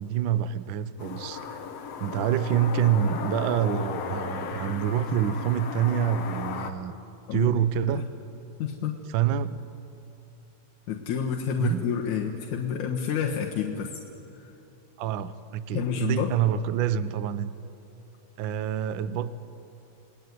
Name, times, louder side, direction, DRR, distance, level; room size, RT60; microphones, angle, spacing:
voice 1, 0.0-1.6 2.0-6.9 7.3-8.0 9.1-9.6 11.6-11.9 15.0-17.5 18.4-19.3, right 9 dB, 75° right, 14 dB, 1.1 m, -26 dB
sound 1, 1.0-6.7, left 6 dB, 60° left, 2.3 m, -35 dB
voice 2, 8.6-8.9 10.9-13.9 14.4-14.5 15.7-16.3, left 8 dB, 85° left, 0 dB, 2.9 m, -29 dB
29.0 x 20.0 x 9.4 m, 3.0 s
omnidirectional pair, 3.3 m